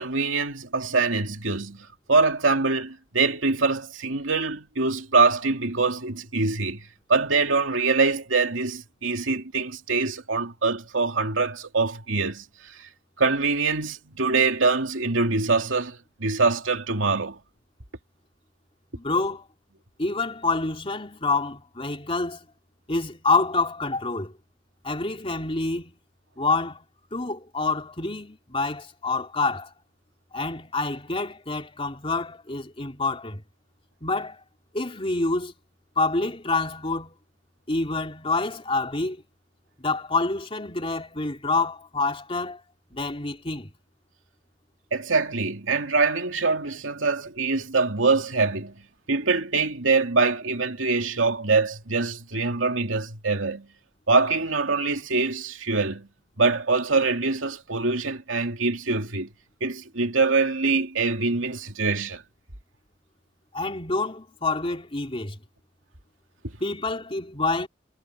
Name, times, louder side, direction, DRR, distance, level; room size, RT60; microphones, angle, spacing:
voice 1, 0.0-12.9 13.2-17.4 44.9-48.7 49.1-53.7 54.1-56.1 56.4-59.3 59.6-62.2, right 4 dB, 90° right, 2.8 m, -24 dB
voice 2, 18.9-19.4 20.0-22.5 22.9-24.3 24.8-25.9 26.4-26.8 27.1-29.7 30.3-33.4 34.0-34.4 34.7-35.5 35.9-37.1 37.7-39.2 39.8-42.6 42.9-43.7 63.5-65.4 66.6-67.7, left 3 dB, 30° left, 3.4 m, -27 dB
head